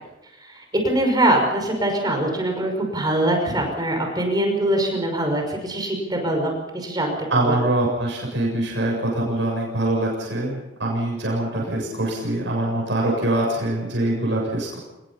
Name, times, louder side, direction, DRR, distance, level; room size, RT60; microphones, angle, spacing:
voice 1, 0.4-7.1 7.4-7.6, right 1 dB, 20° right, 2 dB, 5.6 m, -23 dB
voice 2, 7.3-14.8, right 1 dB, 70° right, -2 dB, 7.3 m, -24 dB
27.0 x 21.5 x 5.7 m, 0.97 s
head